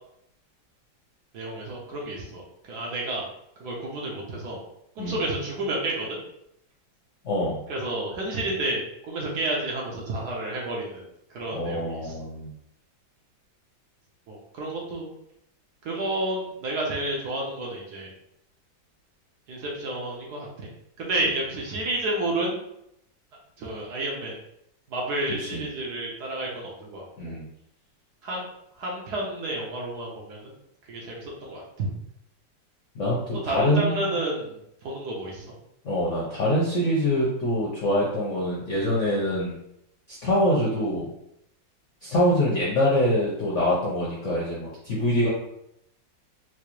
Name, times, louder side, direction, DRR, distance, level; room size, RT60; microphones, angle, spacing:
voice 1, 1.3-3.3 3.6-4.6 5.0-6.2 7.7-11.0 11.3-12.2 14.3-15.1 15.8-18.1 19.5-20.7 21.0-22.6 23.6-24.4 24.9-27.3 28.2-28.5 28.8-30.5 30.9-31.9 33.4-35.5, right 1 dB, 65° right, -3 dB, 1.2 m, -30 dB
voice 2, 7.2-7.6 11.5-12.5 25.4-25.6 27.2-27.5 32.9-34.1 35.8-39.5 40.1-41.0 42.0-45.3, left 1 dB, 60° left, -6 dB, 0.7 m, -24 dB
4.7 x 2.1 x 3.0 m, 0.78 s
omnidirectional pair, 2.1 m